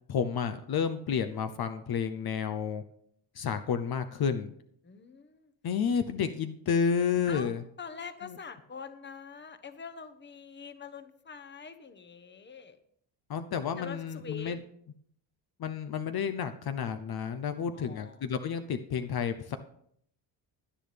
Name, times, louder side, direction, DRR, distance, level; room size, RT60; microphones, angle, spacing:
voice 1, 0.1-2.8 3.3-4.5 5.6-7.6 8.2-8.4 13.3-14.6 15.6-19.6, left 7 dB, 55° left, 9 dB, 0.8 m, -31 dB
voice 2, 4.8-5.5 7.3-7.5 7.8-12.8 13.8-14.6 17.7-18.2, left 6 dB, 25° left, 9 dB, 1.0 m, -44 dB
17.0 x 10.5 x 3.4 m, 0.68 s
cardioid pair, 140°, 45 cm